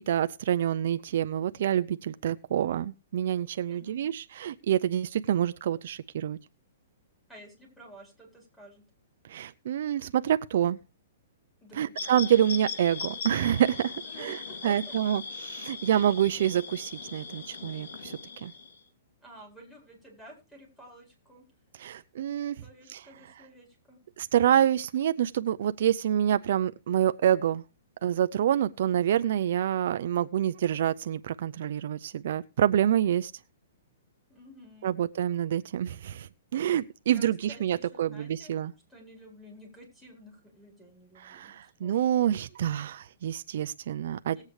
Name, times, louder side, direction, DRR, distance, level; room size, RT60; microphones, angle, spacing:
voice 1, 0.1-6.4 9.3-10.8 11.8-14.4 14.6-18.5 21.8-22.6 22.9-23.0 24.2-27.6 28.0-33.3 34.8-38.7 41.2-44.4, right 10 dB, 55° right, 0.5 m, -27 dB
voice 2, 7.3-8.8 11.6-11.9 14.0-15.0 19.2-21.4 22.6-24.0 34.3-35.0 37.1-38.5 38.9-42.3 44.3-44.4, right 1 dB, 5° left, 4.3 m, -52 dB
sound 1, 12.0-18.8, left 5 dB, 75° left, 2.9 m, -39 dB
19.0 x 8.1 x 3.2 m
hypercardioid pair, 165°, 0 cm